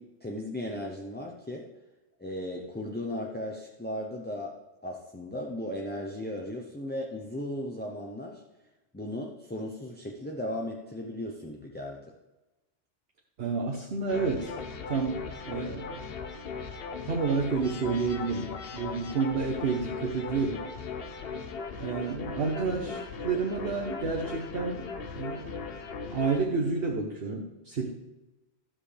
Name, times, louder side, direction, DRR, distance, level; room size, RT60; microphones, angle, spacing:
voice 1, 0.0-1.7 2.2-4.6 4.8-8.4 8.9-12.1, left 1 dB, 10° left, -1 dB, 0.6 m, -36 dB
voice 2, 13.4-14.5 14.9-16.0 17.1-20.6 21.8-24.9 25.1-25.5 26.1-27.9, right 4 dB, 60° right, 0 dB, 1.2 m, -30 dB
sound 1, 14.1-26.4, left 5 dB, 60° left, 0.9 m, -38 dB
12.5 x 7.4 x 3.3 m, 1.1 s
omnidirectional pair, 1.2 m